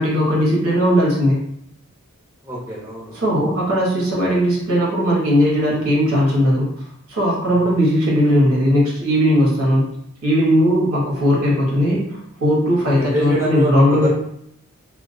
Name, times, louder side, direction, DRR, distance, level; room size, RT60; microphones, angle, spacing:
voice 1, 0.0-1.4 3.1-6.7 7.1-9.9 10.2-14.1, equal, 80° right, -4 dB, 0.9 m, -18 dB
voice 2, 2.4-3.4 7.5-7.7 12.8-14.1, right 1 dB, 10° right, -7 dB, 0.6 m, -25 dB
2.2 x 2.2 x 2.5 m, 0.71 s
head